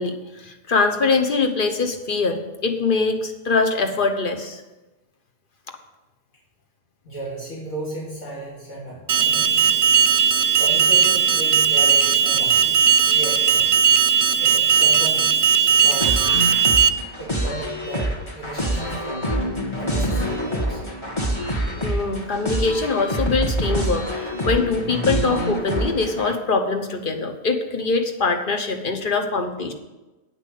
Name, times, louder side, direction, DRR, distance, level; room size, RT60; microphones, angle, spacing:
voice 1, 0.0-4.6 21.8-29.7, left 4 dB, 50° left, 6 dB, 1.2 m, -23 dB
voice 2, 7.0-9.7 10.1-12.7 13.0-13.8 14.4-15.3 15.8-16.4 17.2-19.3 19.8-20.8, right 1 dB, 90° left, -7 dB, 3.3 m, -34 dB
Alarm, 9.1-16.9, right 6 dB, 65° right, 0.8 m, -17 dB
sound 1, 16.0-26.3, equal, 25° left, 1.6 m, -26 dB
9.3 x 5.9 x 8.3 m, 1.1 s
omnidirectional pair, 1.2 m